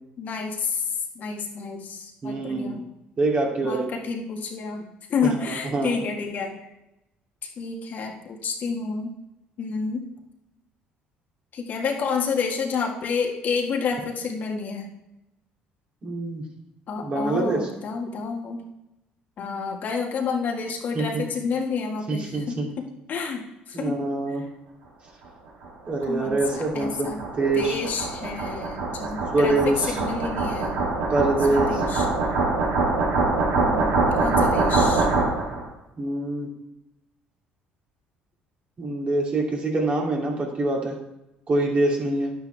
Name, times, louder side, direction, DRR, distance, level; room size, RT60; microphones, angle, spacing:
voice 1, 0.2-2.8 3.6-4.8 5.1-6.5 7.4-9.2 9.6-10.1 11.5-14.9 16.9-18.7 19.4-22.6 23.1-24.0 24.3-24.4 26.0-27.2 27.5-30.7 31.5-32.1 33.5-35.1, left 5 dB, 55° left, 1 dB, 1.9 m, -29 dB
voice 2, 2.2-2.8 3.2-3.8 5.2-6.0 16.0-16.4 17.0-17.6 20.9-21.2 22.1-22.7 23.7-24.4 25.9-27.8 29.3-30.0 31.1-31.8 36.0-36.5 38.8-41.0 41.5-42.3, right 2 dB, 35° right, -1 dB, 2.8 m, -25 dB
sound 1, 25.6-35.6, right 3 dB, 80° right, 4.1 m, -24 dB
10.0 x 9.2 x 3.5 m, 0.92 s
supercardioid pair, 95°, 4 cm